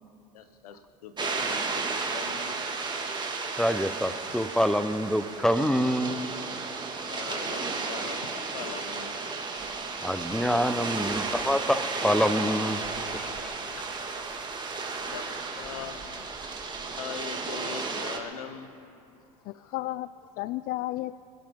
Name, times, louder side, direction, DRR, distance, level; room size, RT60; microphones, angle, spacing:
voice 1, 0.3-2.6 7.0-9.3 13.7-13.8 15.1-16.0 16.8-18.7 19.5-19.7, left 7 dB, 85° left, 10 dB, 1.2 m, -41 dB
sound 1, 1.2-18.2, right 4 dB, 25° right, 2.3 m, -33 dB
voice 2, 3.6-6.2 10.0-12.8 13.1-13.2, equal, 5° left, 12 dB, 1.0 m, -26 dB
voice 3, 19.5-21.2, left 17 dB, 55° left, 17 dB, 0.4 m, -34 dB
28.5 x 11.5 x 3.8 m, 2.7 s
hypercardioid pair, 75°, 19 cm